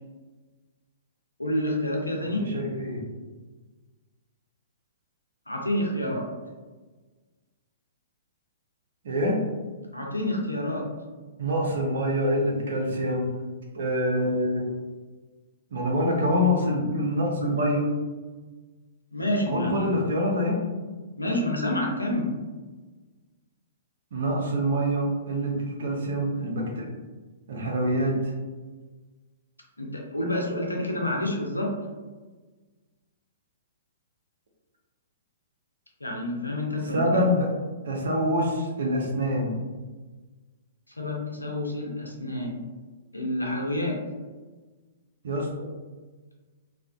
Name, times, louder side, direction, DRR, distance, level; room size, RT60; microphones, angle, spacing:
voice 1, 1.4-2.5 5.5-6.3 9.9-10.9 19.1-19.8 21.2-22.3 29.8-31.7 36.0-37.2 41.0-42.6 43.1-44.0, left 1 dB, 85° left, 0 dB, 0.5 m, -28 dB
voice 2, 2.2-3.0 6.0-6.1 9.0-9.4 11.4-13.3 13.7-14.6 15.7-18.0 19.5-20.6 24.1-26.9 27.5-28.3 36.9-37.5 37.8-39.6 45.2-45.7, equal, 60° right, -1 dB, 0.6 m, -26 dB
2.4 x 2.2 x 2.3 m, 1.3 s
figure-of-eight pair, 115°, 0 cm